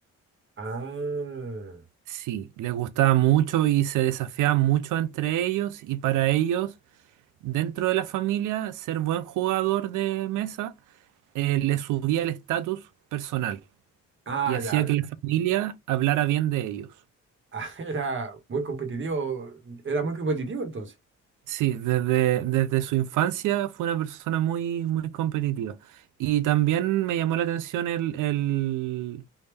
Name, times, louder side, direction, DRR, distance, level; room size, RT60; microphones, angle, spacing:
voice 1, 0.6-1.8 14.3-14.9 17.5-20.9, right 4 dB, 40° right, 1.4 m, -31 dB
voice 2, 2.1-6.7 7.4-10.7 11.3-12.8 13.1-13.6 14.5-16.9 21.5-25.7 26.2-29.2, right 13 dB, 85° right, 0.6 m, -25 dB
3.5 x 2.6 x 3.3 m
cardioid pair, 90°, 30 cm